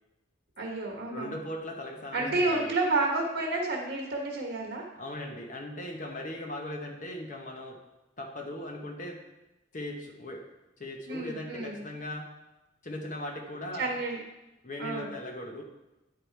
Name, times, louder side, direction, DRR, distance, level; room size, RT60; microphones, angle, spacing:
voice 1, 0.6-1.3 2.1-4.8 11.1-11.8 13.8-14.2 14.8-15.1, right 2 dB, 55° right, -2 dB, 1.3 m, -30 dB
voice 2, 1.1-2.7 5.0-7.8 8.2-9.2 9.7-10.4 10.8-12.3 12.8-14.0 14.6-15.6, left 1 dB, 40° left, 2 dB, 0.9 m, -38 dB
10.0 x 4.8 x 4.5 m, 0.97 s
head